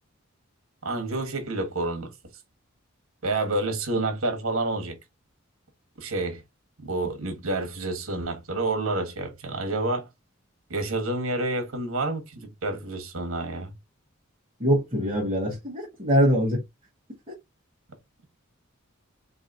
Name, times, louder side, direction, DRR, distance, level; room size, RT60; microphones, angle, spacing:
voice 1, 0.8-2.1 3.2-5.0 6.0-6.4 6.8-10.1 10.7-13.7, right 2 dB, 75° right, 1.3 m, -29 dB
voice 2, 14.6-16.6, equal, 25° right, 1.2 m, -23 dB
4.8 x 2.7 x 2.6 m
head